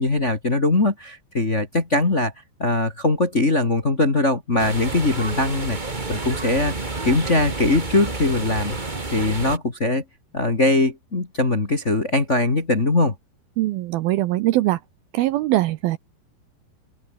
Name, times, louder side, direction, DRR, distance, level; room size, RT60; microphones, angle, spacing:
voice 1, 0.0-2.3 2.6-5.8 6.1-6.7 7.0-8.8 9.1-10.0 10.3-13.1, left 2 dB, 25° left, 1.7 m, -21 dB
sound 1, 4.6-9.6, right 3 dB, 45° right, 0.5 m, -30 dB
voice 2, 13.6-14.8 15.1-16.0, right 16 dB, 80° right, 2.3 m, -21 dB
open air
omnidirectional pair, 4.9 m